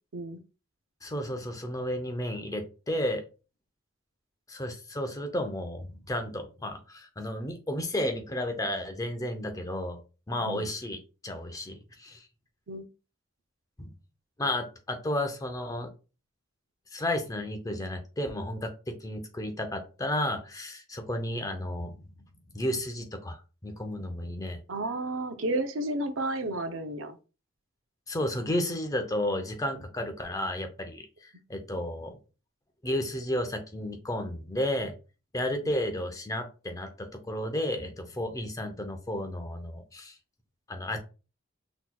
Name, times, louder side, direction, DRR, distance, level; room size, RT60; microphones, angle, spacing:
voice 1, 1.0-3.2 4.5-10.0 10.3-12.2 13.8-13.9 14.4-15.9 16.9-22.0 22.5-23.4 23.6-24.6 28.1-32.2 32.8-34.9 35.3-40.1 40.7-41.0, left 1 dB, 15° left, 6 dB, 0.6 m, -32 dB
voice 2, 24.7-27.2, right 2 dB, 70° right, 9 dB, 0.6 m, -32 dB
6.0 x 2.9 x 2.2 m, 0.32 s
head